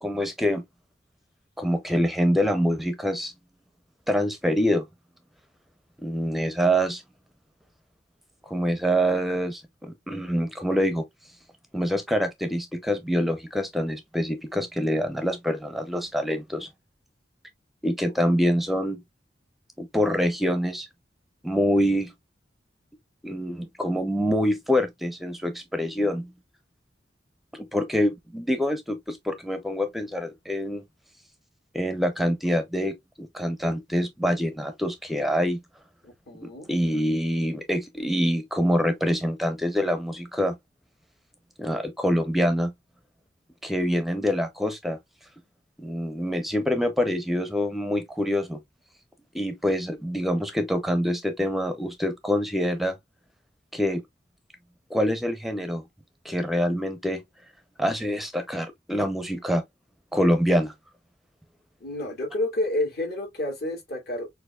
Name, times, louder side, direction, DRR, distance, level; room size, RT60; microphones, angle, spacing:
voice 1, 0.0-0.6 1.6-3.3 4.1-4.8 6.0-7.0 8.5-11.0 11.7-16.7 17.8-19.0 19.8-20.9 21.4-22.1 23.2-26.3 27.5-30.8 31.7-35.6 36.4-40.6 41.6-42.7 43.6-45.0 45.8-48.6 49.3-53.0 53.7-54.0 54.9-55.8 56.2-57.2 57.8-59.6 60.1-60.7, equal, ahead, 0.6 m, -25 dB
voice 2, 36.0-36.7 61.8-64.3, left 1 dB, 60° left, 2.2 m, -30 dB
6.5 x 2.6 x 2.3 m
head